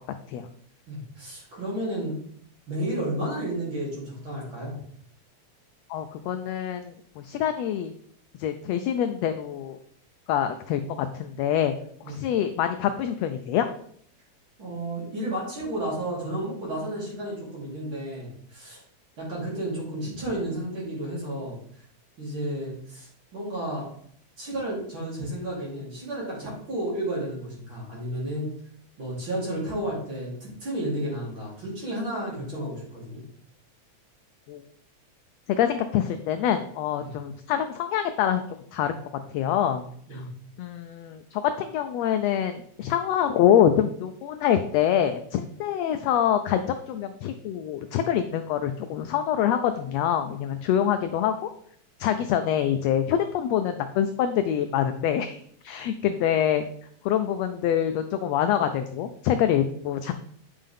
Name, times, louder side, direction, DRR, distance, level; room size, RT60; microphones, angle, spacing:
voice 1, 0.9-2.2 2.7-4.8 12.0-12.2 14.6-18.8 19.2-21.6 22.2-23.9 24.4-28.5 29.0-33.2 37.0-37.1 40.1-40.3, right 1 dB, 40° right, -6 dB, 3.7 m, -32 dB
voice 2, 5.9-7.9 8.4-9.8 10.3-11.7 12.1-13.7 34.5-34.6 35.6-38.4 38.7-38.9 39.3-39.8 40.1-40.2 40.6-51.5 52.0-56.6 57.0-60.1, left 9 dB, 80° left, 9 dB, 1.5 m, -25 dB
9.2 x 5.5 x 3.5 m, 0.63 s
omnidirectional pair, 3.4 m